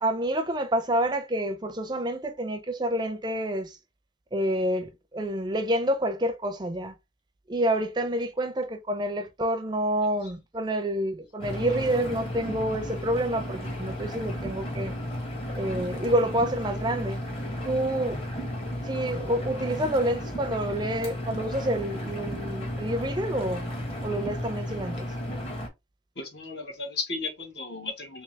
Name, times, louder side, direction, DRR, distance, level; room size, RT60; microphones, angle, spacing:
voice 1, 0.0-3.8 4.3-6.9 7.5-15.0 15.6-17.2 17.6-18.2 18.8-23.7 24.0-25.1, right 1 dB, 25° right, 0.5 m, -28 dB
Engine, 11.4-25.7, equal, 30° left, 1.0 m, -34 dB
voice 2, 26.1-28.2, left 3 dB, 65° left, 1.5 m, -35 dB
3.3 x 3.1 x 3.2 m
head